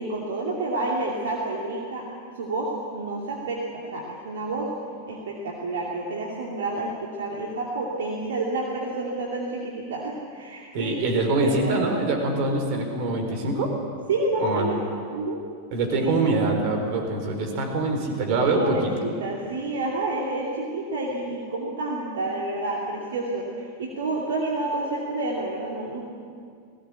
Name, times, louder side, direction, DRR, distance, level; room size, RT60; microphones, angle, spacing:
voice 1, 0.0-2.0 2.4-4.7 5.1-11.0 11.4-11.7 14.1-14.8 15.1-15.4 16.0-16.2 18.4-26.0, right 2 dB, 60° right, -2 dB, 2.6 m, -29 dB
voice 2, 10.7-13.7 14.4-14.6 15.7-18.9, right 2 dB, 45° right, 4 dB, 4.1 m, -24 dB
19.0 x 17.0 x 8.3 m, 2.3 s
figure-of-eight pair, 90°, 0 cm